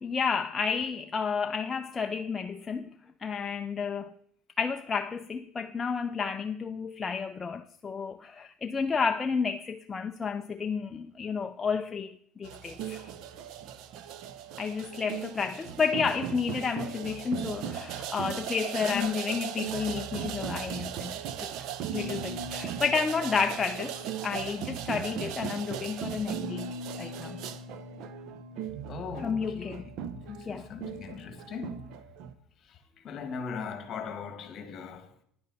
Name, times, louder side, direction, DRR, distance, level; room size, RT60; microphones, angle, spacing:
voice 1, 0.0-2.9 3.2-4.1 4.6-13.1 14.6-21.2 21.4-21.5 21.9-23.9 24.2-27.4 29.2-29.8 30.5-30.7, left 5 dB, 20° left, 0.5 m, -31 dB
sound 1, 12.4-32.3, right 8 dB, 65° right, 0.8 m, -37 dB
voice 2, 28.9-31.9 33.0-35.1, left 6 dB, 45° left, 1.8 m, -39 dB
10.5 x 9.6 x 4.1 m
supercardioid pair, 115°, 0 cm